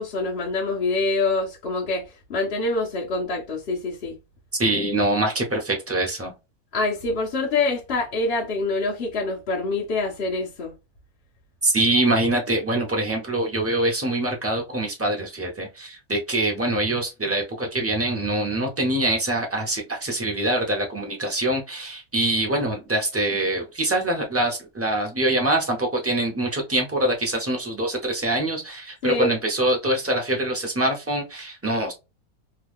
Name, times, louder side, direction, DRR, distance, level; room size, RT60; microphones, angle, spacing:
voice 1, 0.0-4.2 6.7-10.7 29.0-29.4, left 3 dB, 50° left, 0.8 m, -25 dB
voice 2, 4.6-6.3 11.6-31.9, right 1 dB, 15° right, 0.7 m, -24 dB
3.0 x 2.2 x 3.4 m
omnidirectional pair, 1.6 m